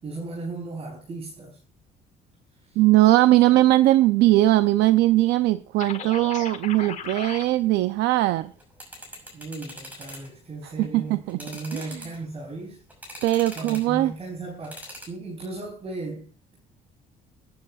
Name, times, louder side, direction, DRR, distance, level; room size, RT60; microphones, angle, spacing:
voice 1, 0.0-1.6 2.7-2.8 9.3-12.8 13.5-16.6, right 2 dB, 35° right, 4.1 m, -36 dB
voice 2, 2.8-8.5 10.8-11.4 11.7-12.0 13.2-14.1, right 16 dB, 85° right, 0.6 m, -20 dB
sound 1, 5.8-7.4, left 7 dB, 45° left, 1.6 m, -36 dB
sound 2, 8.5-10.3 10.7-10.8 11.3-12.4 12.9-14.0 14.6-15.1, equal, 10° right, 5.8 m, -42 dB
24.0 x 9.6 x 2.4 m
cardioid pair, 110°, 17 cm